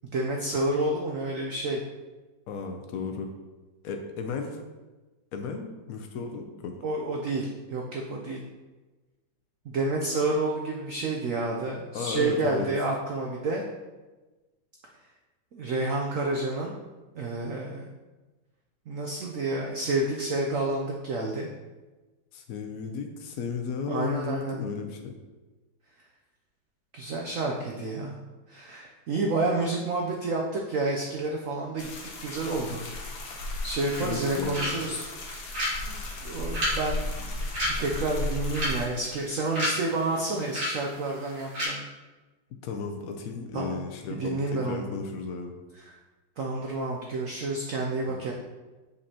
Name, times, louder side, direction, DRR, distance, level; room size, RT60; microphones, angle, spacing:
voice 1, 0.1-1.8 6.8-8.4 9.6-13.6 15.5-16.7 17.1-17.9 18.9-21.5 23.9-24.6 26.9-28.2 28.5-31.9 32.2-32.8 33.6-35.3 35.9-37.3 37.8-41.8 43.5-43.8 44.1-44.9 45.8-46.0 46.4-48.3, right 2 dB, 75° right, 0 dB, 0.7 m, -29 dB
voice 2, 2.5-3.3 3.8-4.6 5.3-6.8 11.9-12.7 22.3-25.1 34.0-34.8 42.6-45.5 48.1-48.3, left 5 dB, 90° left, 4 dB, 0.7 m, -34 dB
sound 1, 31.8-38.9, left 2 dB, 55° left, 1.2 m, -35 dB
sound 2, 33.9-41.7, equal, 60° right, 2.8 m, -34 dB
6.7 x 5.2 x 2.8 m, 1.2 s
omnidirectional pair, 2.1 m